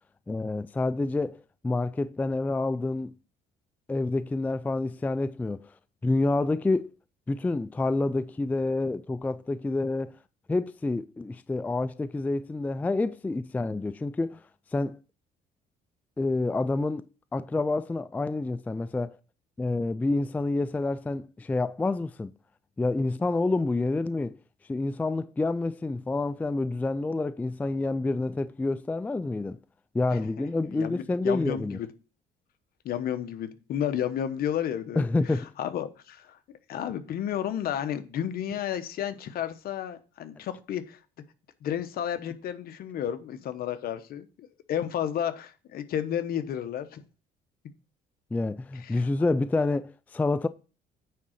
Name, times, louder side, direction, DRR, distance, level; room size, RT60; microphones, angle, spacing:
voice 1, 0.3-1.4 1.6-3.1 3.9-5.7 6.0-6.9 7.3-10.2 10.5-14.4 14.7-15.0 16.2-17.1 17.3-19.2 19.6-22.3 22.8-24.4 24.7-29.6 29.9-31.8 35.0-35.5 48.3-50.5, left 2 dB, 10° left, 0.3 m, -28 dB
voice 2, 30.7-31.9 32.8-36.4 36.7-41.0 41.6-47.0 48.7-49.0, left 10 dB, 65° left, 1.0 m, -32 dB
9.4 x 3.7 x 6.4 m
cardioid pair, 110°, 17 cm